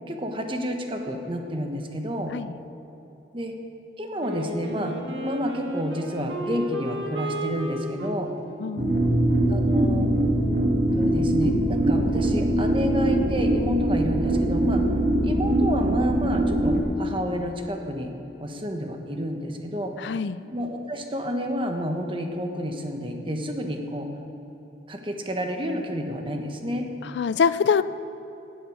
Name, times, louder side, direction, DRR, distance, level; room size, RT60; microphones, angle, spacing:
voice 1, 0.1-2.3 3.3-3.5 4.0-5.0 5.2-8.3 9.5-10.1 10.9-14.8 15.2-18.1 18.4-19.9 20.5-24.1 24.9-26.9, equal, 30° right, 3 dB, 1.3 m, -30 dB
Wind instrument woodwind instrument, 4.2-10.8, equal, 80° right, 1.7 m, -34 dB
voice 2, 8.6-9.1 20.0-20.4 27.2-27.8, left 6 dB, 70° left, 15 dB, 0.4 m, -24 dB
sound 1, 8.8-16.8, right 1 dB, 50° right, 2.0 m, -22 dB
17.5 x 8.0 x 6.4 m, 3.0 s
head